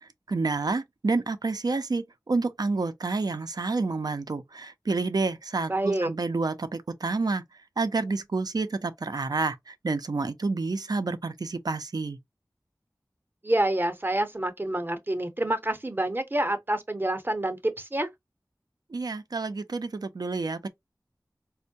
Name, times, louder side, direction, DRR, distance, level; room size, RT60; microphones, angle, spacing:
voice 1, 0.3-7.4 7.8-12.2 18.9-20.7, right 3 dB, 70° right, 0.5 m, -29 dB
voice 2, 5.7-6.1 13.4-18.1, right 1 dB, 30° right, 0.7 m, -27 dB
4.3 x 2.1 x 2.6 m
wide cardioid pair, 50°, 7 cm